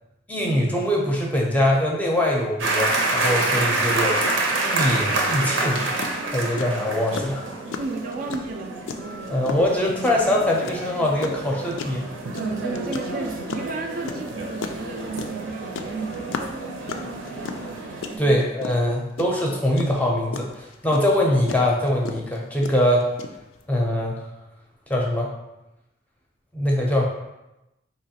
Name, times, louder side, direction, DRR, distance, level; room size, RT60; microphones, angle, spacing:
voice 1, 0.3-4.2 4.6-5.9 6.3-7.4 9.3-12.1 18.2-23.1 23.7-24.2 24.9-25.3 26.5-27.0, left 1 dB, 10° left, -2 dB, 0.5 m, -22 dB
sound 1, 2.6-18.2, right 2 dB, 90° right, 0.6 m, -28 dB
voice 2, 3.4-3.7 7.8-9.4 12.3-16.3 18.1-18.4, right 3 dB, 50° right, 3 dB, 0.3 m, -33 dB
sound 2, 4.2-4.4 4.8-23.6, left 5 dB, 85° left, 0.3 m, -34 dB
3.9 x 2.9 x 2.8 m, 0.95 s
head